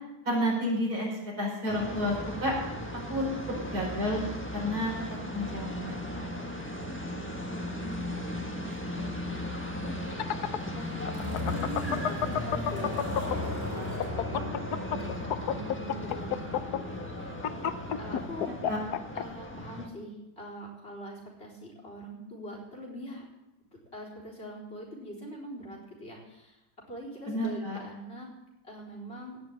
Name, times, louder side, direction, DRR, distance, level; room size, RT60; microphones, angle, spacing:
voice 1, 0.3-2.5 3.1-4.2 4.5-4.9 5.3-6.3 18.5-18.8 27.2-27.8, equal, 65° right, -3 dB, 5.6 m, -31 dB
sound 1, 1.7-19.9, equal, 10° left, 1.4 m, -38 dB
voice 2, 7.7-8.3 8.7-9.6 10.7-13.2 13.7-14.0 14.3-17.3 18.0-18.5 19.1-23.3 23.9-26.6 26.9-28.3 28.6-29.4, equal, 40° left, -2 dB, 4.4 m, -43 dB
sound 2, 9.8-18.3, left 2 dB, 15° right, 4.0 m, -38 dB
sound 3, 10.0-13.5 13.9-19.2, left 10 dB, 75° left, 1.3 m, -30 dB
17.5 x 6.1 x 8.8 m, 0.95 s
omnidirectional pair, 1.7 m